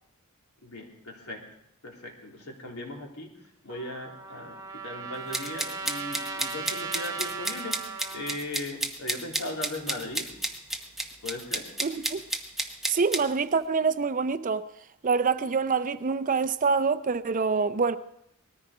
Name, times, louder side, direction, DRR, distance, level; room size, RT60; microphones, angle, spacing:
voice 1, 0.6-1.4 1.8-3.3 3.6-7.7 8.1-10.3 11.2-11.6, left 1 dB, 80° left, 3.3 m, -38 dB
Trumpet, 3.7-8.4, right 4 dB, 15° right, 2.0 m, -37 dB
sound 1, 5.3-13.2, right 1 dB, ahead, 1.0 m, -32 dB
voice 2, 11.8-12.2 12.9-14.7 15.0-18.0, right 5 dB, 35° right, 0.5 m, -26 dB
19.5 x 14.0 x 4.9 m
head